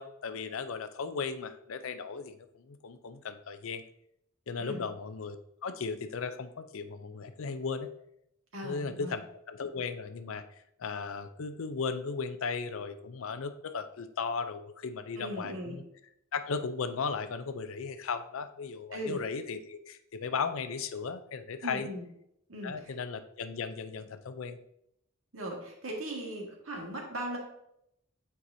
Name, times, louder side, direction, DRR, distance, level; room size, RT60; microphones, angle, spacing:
voice 1, 0.0-3.8 4.5-5.4 5.6-7.9 8.6-9.2 9.5-10.4 10.8-15.8 16.3-21.9 22.6-24.6, left 5 dB, 80° left, 10 dB, 0.5 m, -36 dB
voice 2, 8.5-9.2 15.2-15.8 18.9-19.2 21.6-22.0 22.5-22.9 25.3-27.4, right 1 dB, 85° right, -1 dB, 1.7 m, -38 dB
8.7 x 4.7 x 2.7 m, 0.76 s
head